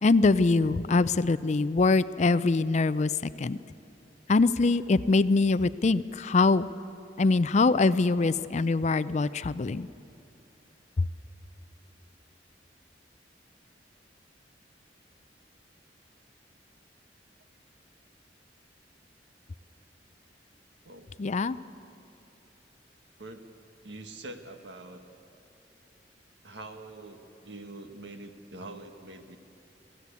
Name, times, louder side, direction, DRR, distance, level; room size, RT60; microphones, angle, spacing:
voice 1, 0.0-3.1 3.4-3.6 4.3-6.7 7.2-9.9 11.0-11.1 21.2-21.6, left 3 dB, 40° left, 15 dB, 0.4 m, -23 dB
voice 2, 23.8-25.0 26.4-29.4, right 2 dB, 75° right, 6 dB, 1.6 m, -44 dB
22.5 x 16.0 x 8.3 m, 2.7 s
head